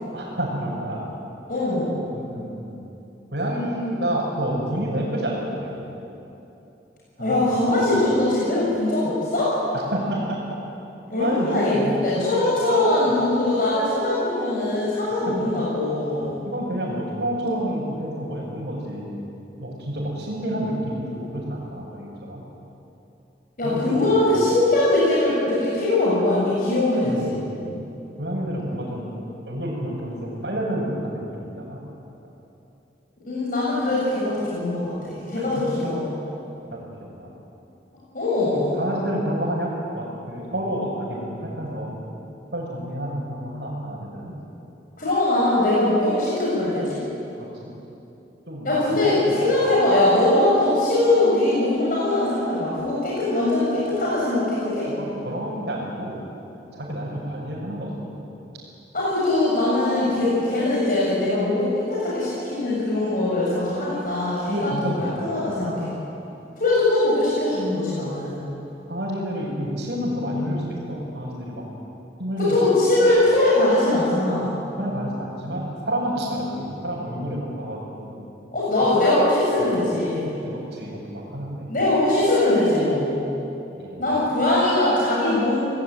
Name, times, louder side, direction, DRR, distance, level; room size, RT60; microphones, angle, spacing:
voice 1, 0.1-1.1 2.1-2.7 3.3-5.9 7.2-7.4 7.8-7.9 9.7-10.4 11.2-12.3 12.6-12.9 15.3-15.6 16.4-19.2 19.6-22.4 23.6-24.4 27.0-27.8 28.2-29.1 29.5-31.8 35.4-35.7 36.7-37.3 38.5-42.0 42.5-44.4 47.4-47.8 48.5-49.4 54.9-56.2 56.6-58.2 64.5-65.7 68.9-71.6 72.2-72.6 74.8-78.2 80.2-81.7 83.7-84.2, equal, 65° right, -8 dB, 6.4 m, -29 dB
voice 2, 1.5-1.9 7.2-9.5 11.1-16.3 23.6-27.4 33.3-36.1 38.1-38.8 45.0-47.0 48.6-54.9 58.9-65.9 66.6-68.4 72.4-74.5 78.5-80.3 81.7-83.1 84.0-85.6, left 2 dB, 50° left, -7 dB, 7.4 m, -21 dB
29.0 x 18.5 x 9.5 m, 2.9 s
head